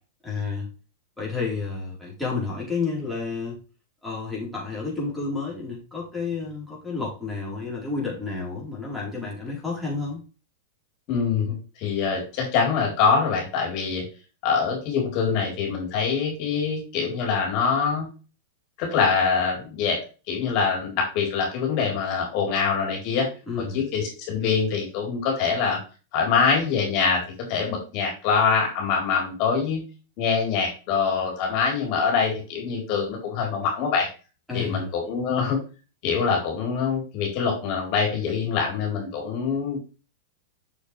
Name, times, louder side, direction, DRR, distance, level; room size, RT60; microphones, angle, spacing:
voice 1, 0.2-0.7 1.2-3.6 4.0-10.2 23.5-23.8 34.5-34.9, left 4 dB, ahead, -6 dB, 4.2 m, -30 dB
voice 2, 11.1-14.0 14.4-18.1 18.8-20.0 20.3-23.3 23.6-25.8 26.1-27.2 27.5-29.8 30.2-34.1 34.5-35.6 36.0-39.8, left 5 dB, 50° left, -1 dB, 4.0 m, -24 dB
7.4 x 6.5 x 3.4 m, 0.33 s
hypercardioid pair, 125°, 0 cm